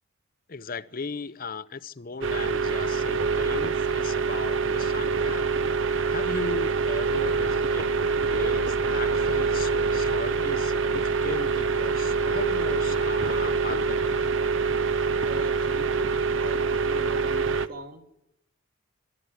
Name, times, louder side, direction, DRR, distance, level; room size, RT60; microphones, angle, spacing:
voice 1, 0.5-5.5 6.1-14.2, left 4 dB, 40° left, 0.7 m, -37 dB
sound 1, 2.2-17.7, right 5 dB, 60° right, 0.7 m, -25 dB
voice 2, 15.3-18.2, left 1 dB, 40° right, 1.9 m, -40 dB
24.0 x 12.0 x 9.5 m
head